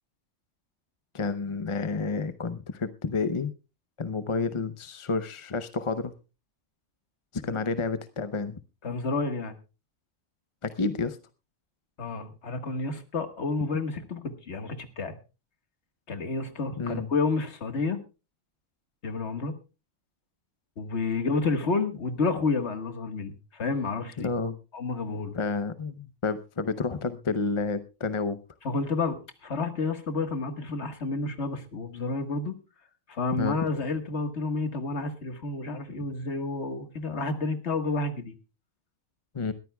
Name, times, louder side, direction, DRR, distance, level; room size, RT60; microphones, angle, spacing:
voice 1, 1.1-3.5 4.0-6.1 7.3-8.6 10.6-11.2 16.8-17.1 24.2-24.6 25.3-28.4 33.4-33.6 39.3-39.5, left 4 dB, 35° left, 11 dB, 0.5 m, -30 dB
voice 2, 8.8-9.6 12.0-15.2 16.1-18.0 19.0-19.6 20.8-24.3 24.7-25.4 28.6-32.6 33.1-38.4, left 3 dB, 55° left, 8 dB, 1.8 m, -30 dB
21.5 x 14.0 x 2.3 m, 0.30 s
omnidirectional pair, 1.4 m